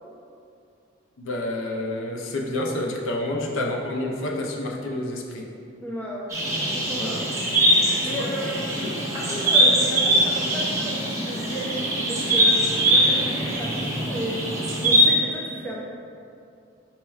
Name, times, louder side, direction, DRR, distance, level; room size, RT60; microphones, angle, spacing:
voice 1, 1.2-5.5 6.9-7.2 8.0-8.3 8.8-9.0, left 1 dB, 80° left, 1 dB, 0.5 m, -29 dB
voice 2, 5.8-6.3 6.9-7.1 8.0-14.6 14.8-15.8, equal, 10° left, -4 dB, 0.3 m, -33 dB
sound 1, 6.3-15.0, right 1 dB, 15° right, 0.7 m, -22 dB
4.3 x 4.2 x 2.3 m, 2.4 s
head